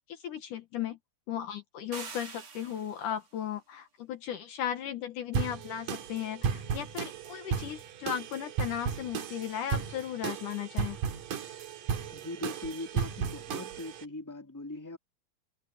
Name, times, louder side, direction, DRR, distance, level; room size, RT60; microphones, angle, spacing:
voice 1, 0.1-1.0 1.3-11.0, left 10 dB, 70° left, 2.6 m, -36 dB
sound 1, 1.9-3.2, right 5 dB, 40° right, 3.2 m, -44 dB
sound 2, 5.3-14.0, right 6 dB, 65° right, 3.3 m, -35 dB
voice 2, 12.1-15.0, left 2 dB, 5° left, 2.7 m, -40 dB
omnidirectional pair, 4.1 m